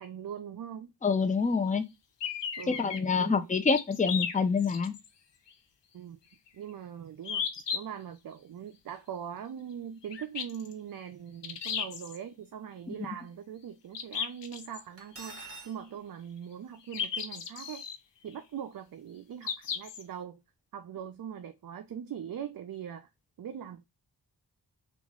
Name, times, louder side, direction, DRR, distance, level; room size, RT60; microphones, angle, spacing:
voice 1, 0.0-0.9 2.6-2.9 3.2-3.6 5.9-6.2 6.5-7.5 7.7-17.9 18.2-20.4 20.7-23.1 23.4-23.8, right 8 dB, 55° right, 0.4 m, -41 dB
voice 2, 1.0-1.8 2.7-4.9 12.9-13.0, left 5 dB, 20° left, 0.5 m, -27 dB
sound 1, 2.2-3.0 3.7-5.1 5.5-5.6 7.2-7.8 10.1-10.7 11.4-12.2 13.9-14.8 16.9-18.0 19.4-20.0, left 7 dB, 85° left, 0.7 m, -34 dB
Cutlery silverware, 15.0-15.8, right 3 dB, 35° right, 1.3 m, -45 dB
3.0 x 2.5 x 3.6 m
wide cardioid pair, 80°, 42 cm